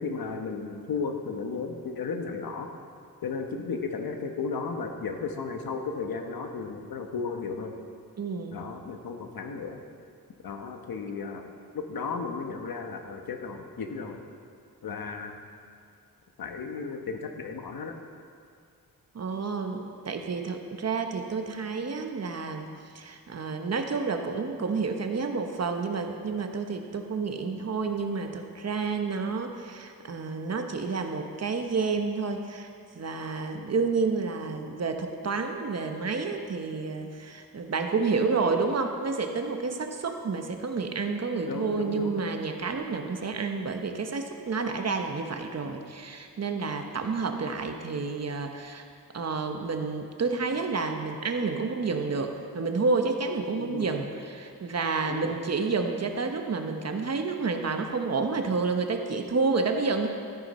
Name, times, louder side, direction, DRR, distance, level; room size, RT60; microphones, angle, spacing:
voice 1, 0.0-2.7 3.2-7.7 8.5-9.8 10.4-14.2 14.8-15.4 16.4-17.9 41.5-42.1 42.8-42.9 53.6-53.9 55.1-55.4, left 4 dB, 70° left, 4 dB, 1.2 m, -34 dB
voice 2, 8.2-8.6 19.1-32.7 32.9-48.8 49.1-60.1, right 4 dB, 45° right, 5 dB, 0.9 m, -30 dB
13.0 x 10.5 x 4.3 m, 2.3 s
wide cardioid pair, 130°, 36 cm